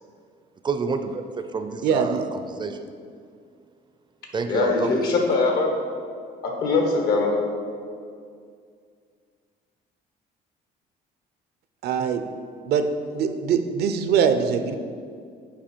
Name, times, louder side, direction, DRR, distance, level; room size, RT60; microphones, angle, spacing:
voice 1, 0.6-2.8 4.3-4.9, right 4 dB, 25° right, 8 dB, 0.4 m, -29 dB
voice 2, 1.8-2.2 11.8-12.2 12.7-12.9 13.1-14.7, right 7 dB, 70° right, 8 dB, 0.6 m, -22 dB
voice 3, 4.5-5.8 6.4-7.4, left 3 dB, 75° left, 2 dB, 1.3 m, -22 dB
7.5 x 4.8 x 4.5 m, 2.2 s
cardioid pair, 110°, 17 cm